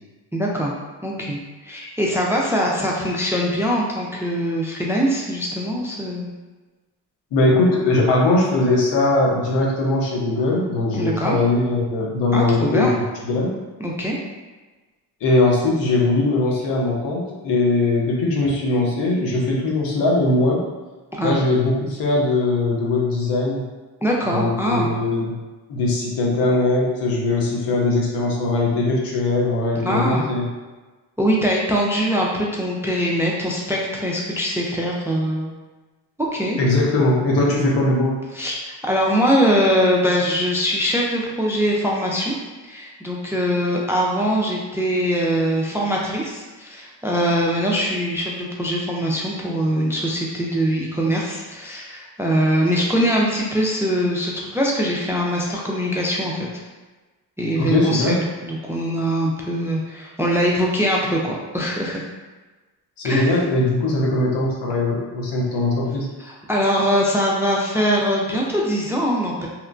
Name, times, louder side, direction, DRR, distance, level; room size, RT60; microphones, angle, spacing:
voice 1, 0.3-0.7 1.0-6.3 10.9-11.4 12.3-12.9 13.8-14.2 21.1-21.4 24.0-24.9 29.8-30.3 31.2-35.5 36.2-36.6 38.3-42.3 42.7-56.5 57.4-62.1 63.0-63.3 66.3-69.5, equal, 5° right, -2 dB, 0.3 m, -22 dB
voice 2, 7.3-12.9 13.3-13.5 15.2-20.7 21.2-23.6 24.3-25.3 25.7-30.4 36.6-38.2 57.6-58.2 63.0-66.1, left 2 dB, 75° left, -2 dB, 0.8 m, -20 dB
2.9 x 2.2 x 2.5 m, 1.2 s
supercardioid pair, 70°, 42 cm